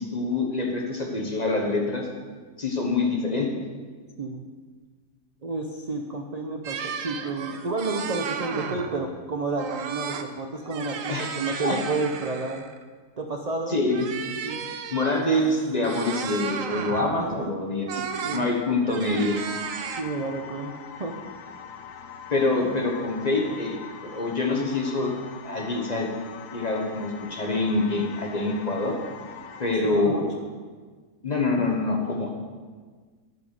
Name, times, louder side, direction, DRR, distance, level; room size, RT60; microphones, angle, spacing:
voice 1, 0.0-2.1 2.6-3.5 11.1-11.8 13.7-14.1 14.9-18.0 18.3-19.4 22.3-23.8 24.0-25.1 25.4-26.1 26.5-28.9 29.6-30.3 31.2-32.3, left 2 dB, 30° left, 1 dB, 1.1 m, -25 dB
voice 2, 5.4-12.6 13.2-13.8 14.4-14.7 17.2-17.5 17.9-18.5 19.9-21.1 29.8-30.2, right 3 dB, 45° right, 2 dB, 0.5 m, -31 dB
sound 1, 6.6-9.0 9.6-10.3 10.6-12.8 13.9-17.2 17.9-18.4 18.8-20.0, right 7 dB, 60° right, 1.0 m, -34 dB
sound 2, 19.3-29.8, left 7 dB, 90° left, 1.3 m, -42 dB
10.5 x 5.9 x 6.7 m, 1.5 s
omnidirectional pair, 1.7 m